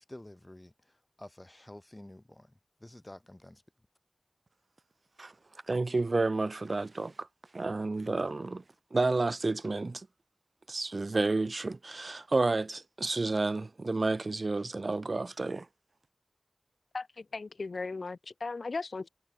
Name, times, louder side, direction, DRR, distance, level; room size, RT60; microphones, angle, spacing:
voice 1, 0.0-2.5 2.8-3.6, left 1 dB, 25° left, 6.7 m, -50 dB
voice 2, 5.7-7.3 7.5-8.6 8.9-10.1 10.7-15.7, right 3 dB, 65° right, 1.3 m, -30 dB
voice 3, 16.9-19.1, left 3 dB, 90° left, 6.2 m, -37 dB
wide cardioid pair, 60°, 0 cm